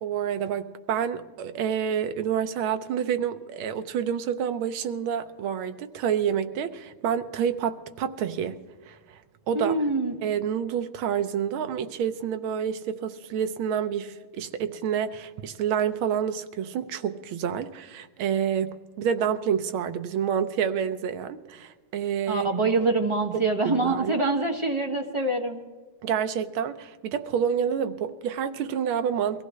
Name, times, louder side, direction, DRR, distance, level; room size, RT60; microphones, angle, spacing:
voice 1, 0.0-8.6 8.9-9.2 9.5-9.8 10.2-22.5 23.3-24.2 26.0-29.4, right 8 dB, 75° right, 9 dB, 1.6 m, -28 dB
voice 2, 9.5-10.1 22.3-25.6, right 3 dB, 20° right, 1 dB, 1.0 m, -25 dB
22.5 x 15.5 x 3.2 m, 1.4 s
omnidirectional pair, 2.3 m